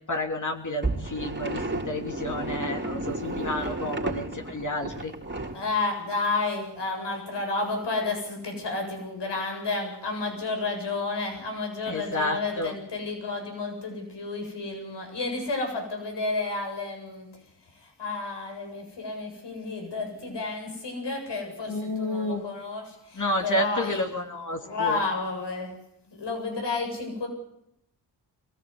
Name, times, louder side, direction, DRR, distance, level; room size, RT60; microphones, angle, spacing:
voice 1, 0.1-5.1 11.9-12.7 21.7-22.4 23.2-25.0, left 1 dB, 45° left, 3 dB, 3.2 m, -30 dB
sound 1, 0.8-5.5, right 2 dB, 25° right, 4.0 m, -32 dB
voice 2, 5.5-17.3 17.8-24.0 24.6-25.7 26.1-27.3, left 3 dB, 75° left, 3 dB, 7.8 m, -31 dB
23.0 x 16.5 x 9.8 m, 0.78 s
cardioid pair, 65°, 42 cm